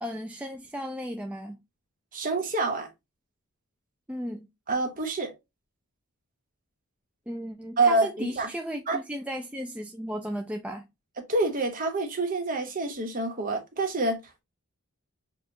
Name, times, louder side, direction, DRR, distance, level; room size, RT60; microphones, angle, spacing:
voice 1, 0.0-1.6 4.1-4.5 7.3-10.8, equal, 5° right, 0.3 m, -35 dB
voice 2, 2.1-2.9 4.7-5.3 7.8-8.5 8.9-9.0 11.3-14.2, right 2 dB, 35° right, 1.1 m, -27 dB
7.0 x 2.4 x 2.7 m
head